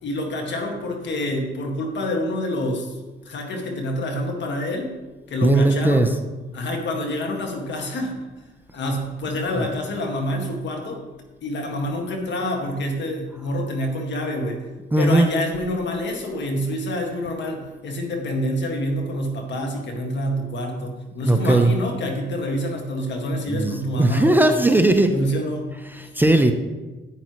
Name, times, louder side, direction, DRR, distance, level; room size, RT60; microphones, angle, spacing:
voice 1, 0.0-3.0 3.3-4.9 5.3-6.1 6.5-8.1 8.7-11.0 11.4-14.6 15.0-24.4 25.1-25.7 26.5-26.6, left 1 dB, 65° left, 2 dB, 1.9 m, -27 dB
voice 2, 5.4-6.1 14.9-15.3 21.2-21.7 23.5-25.1 25.9-26.5, right 2 dB, 10° right, 6 dB, 0.6 m, -18 dB
9.7 x 9.0 x 3.1 m, 1.2 s
cardioid pair, 90°, 20 cm